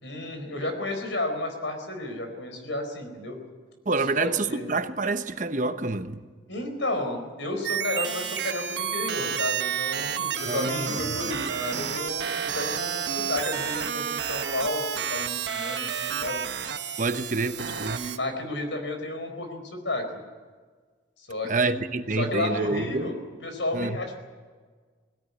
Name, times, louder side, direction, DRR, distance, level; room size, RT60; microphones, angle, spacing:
voice 1, 0.0-3.4 4.1-4.7 6.5-16.4 17.6-20.0 21.2-21.7 22.2-24.2, left 2 dB, 80° left, 4.7 m, -32 dB
voice 2, 3.9-6.2 10.5-11.2 17.0-18.0 21.4-23.1 23.7-24.0, right 3 dB, 40° right, 0.9 m, -27 dB
sound 1, 7.6-18.2, right 8 dB, 65° right, 1.2 m, -30 dB
20.5 x 17.0 x 9.6 m
head